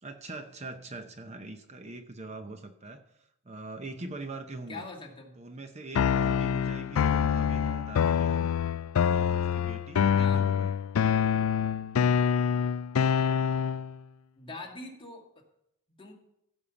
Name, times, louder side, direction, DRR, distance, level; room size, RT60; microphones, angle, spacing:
voice 1, 0.0-4.8 5.4-8.5 9.2-10.7, right 2 dB, 30° right, 7 dB, 0.7 m, -42 dB
voice 2, 4.7-5.4 10.1-10.4 14.4-15.3 15.9-16.1, left 3 dB, 25° left, -1 dB, 2.1 m, -42 dB
sound 1, 5.9-13.9, left 7 dB, 85° left, 0.4 m, -26 dB
15.5 x 5.5 x 7.0 m, 0.79 s
head